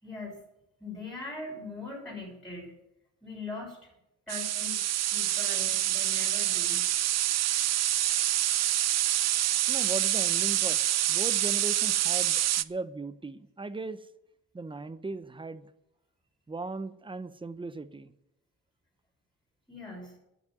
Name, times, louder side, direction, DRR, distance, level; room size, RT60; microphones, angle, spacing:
voice 1, 0.0-0.4 0.8-2.7 3.2-3.9 4.3-6.9 19.7-20.2, left 2 dB, ahead, -5 dB, 6.3 m, -41 dB
sound 1, 4.3-12.6, right 13 dB, 60° right, 0.6 m, -27 dB
voice 2, 9.7-10.8 11.1-14.0 14.5-15.7 16.5-18.1, right 3 dB, 15° right, 13 dB, 0.9 m, -38 dB
10.5 x 9.6 x 9.4 m, 0.86 s
cardioid pair, 90°, 30 cm